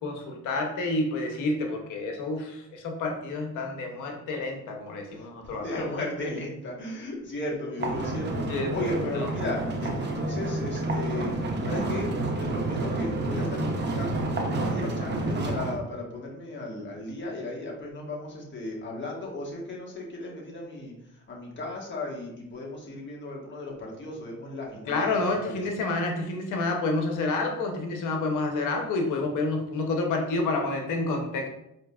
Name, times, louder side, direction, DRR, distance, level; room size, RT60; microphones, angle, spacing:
voice 1, 0.0-5.8 8.5-8.7 24.9-31.5, left 2 dB, 90° left, 3 dB, 0.8 m, -29 dB
voice 2, 5.1-25.6, left 2 dB, 40° left, -3 dB, 1.3 m, -35 dB
sound 1, 7.8-15.7, right 2 dB, 35° right, 0.7 m, -29 dB
4.6 x 2.7 x 2.3 m, 0.81 s
cardioid pair, 90°, 30 cm